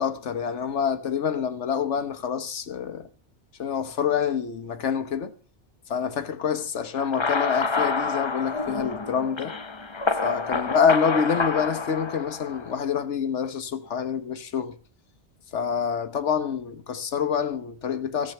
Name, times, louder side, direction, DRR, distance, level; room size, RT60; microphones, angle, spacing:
voice 1, 0.0-3.1 3.6-5.3 5.9-9.6 10.2-14.8 15.5-18.3, left 7 dB, 75° left, 1.3 m, -26 dB
sound 1, 7.0-12.8, left 4 dB, 30° left, 0.7 m, -28 dB
16.0 x 7.6 x 6.5 m
omnidirectional pair, 1.2 m